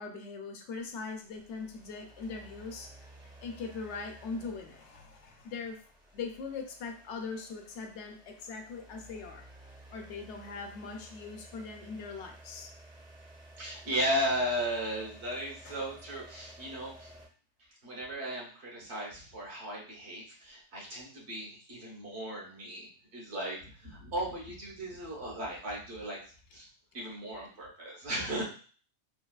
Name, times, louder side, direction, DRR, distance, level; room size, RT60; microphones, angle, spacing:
voice 1, 0.0-2.9 3.4-9.4 9.9-12.7 15.6-15.8, left 4 dB, 80° left, 4 dB, 0.9 m, -41 dB
sound 1, 0.7-17.3, right 1 dB, 5° right, 0.6 m, -54 dB
voice 2, 13.6-17.1 17.8-26.2 26.5-26.7 26.9-28.4, equal, 70° right, -4 dB, 1.3 m, -36 dB
3.3 x 2.3 x 2.3 m, 0.41 s
omnidirectional pair, 1.2 m